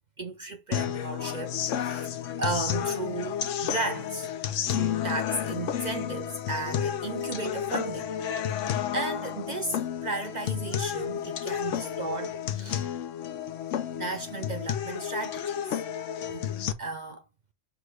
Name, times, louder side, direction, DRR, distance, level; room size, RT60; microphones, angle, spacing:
voice 1, 0.2-4.3 4.7-8.1 8.6-12.9 13.9-15.6 16.3-16.5 16.8-17.2, right 3 dB, 55° right, 0.5 m, -35 dB
sound 1, 0.7-16.7, left 9 dB, 90° left, 1.0 m, -31 dB
5.8 x 2.3 x 3.1 m
omnidirectional pair, 1.2 m